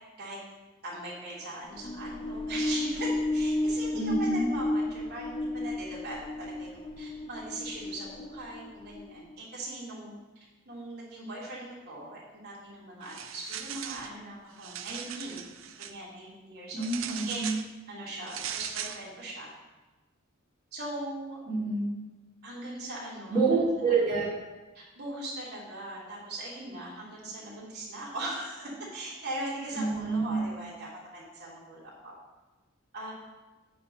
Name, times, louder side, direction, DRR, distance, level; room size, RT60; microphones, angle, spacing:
voice 1, 0.8-15.5 15.8-16.9 17.3-17.5 17.9-19.5 20.7-21.4 22.4-24.0 24.7-32.1 32.9-33.1, right 1 dB, 50° right, -6 dB, 3.4 m, -40 dB
sound 1, 1.6-9.3, left 1 dB, 25° left, 0.6 m, -32 dB
voice 2, 3.9-4.5 16.7-17.6 21.5-21.9 23.3-24.3 29.7-30.5, right 3 dB, 30° right, -12 dB, 2.8 m, -27 dB
sound 2, 13.0-14.1 14.5-15.9 16.8-17.7 18.3-19.0, right 9 dB, 65° right, 0.6 m, -39 dB
9.2 x 4.5 x 6.5 m, 1.1 s
head